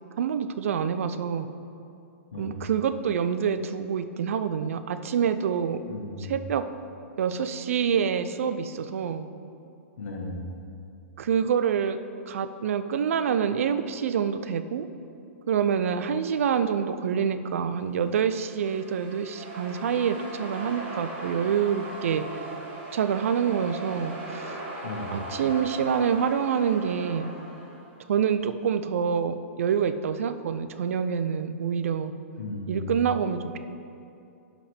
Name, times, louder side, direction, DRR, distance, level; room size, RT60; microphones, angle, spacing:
voice 1, 0.2-1.5 2.4-5.8 6.2-6.6 7.2-9.3 11.2-12.0 12.3-14.9 15.5-22.2 22.9-24.6 25.1-27.3 28.1-32.1 32.7-33.6, right 7 dB, 75° right, 11 dB, 0.5 m, -26 dB
voice 2, 5.9-6.3 10.0-10.5 24.8-25.1 32.4-32.9, left 2 dB, 85° left, 0 dB, 1.6 m, -35 dB
sound 1, 18.1-27.9, right 2 dB, 35° right, 1.8 m, -39 dB
11.5 x 5.0 x 3.4 m, 2.7 s
hypercardioid pair, 130°, 8 cm